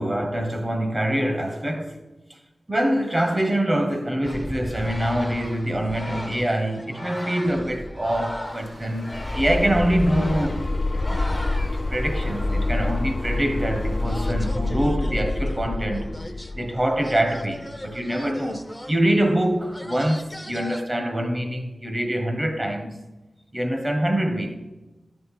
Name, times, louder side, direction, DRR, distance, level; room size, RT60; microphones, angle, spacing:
voice 1, 0.0-2.0 2.7-10.7 11.0-11.4 11.9-16.3 16.5-23.0 23.5-24.6, right 1 dB, 30° right, 1.3 m, -25 dB
sound 1, 4.2-20.8, left 1 dB, 10° left, 0.8 m, -37 dB
sound 2, 8.4-14.5, right 1 dB, 60° right, 3.3 m, -44 dB
sound 3, 9.1-18.0, left 2 dB, 45° left, 0.4 m, -27 dB
12.0 x 5.2 x 6.0 m
cardioid pair, 50°, 0 cm